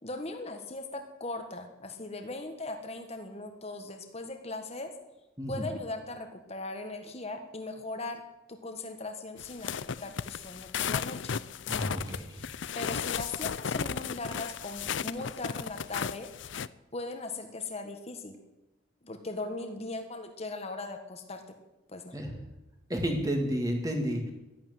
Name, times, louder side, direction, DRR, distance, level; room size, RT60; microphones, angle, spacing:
voice 1, 0.0-4.9 5.5-8.2 8.5-11.4 12.3-16.3 16.9-18.4 19.0-21.4 21.9-22.2, left 2 dB, 30° left, 6 dB, 1.5 m, -39 dB
voice 2, 5.4-5.7 11.7-12.3 22.1-22.3 22.9-24.3, equal, 20° right, 2 dB, 2.0 m, -31 dB
sound 1, 9.4-16.7, left 7 dB, 65° left, 0.5 m, -35 dB
12.0 x 12.0 x 9.3 m, 0.99 s
head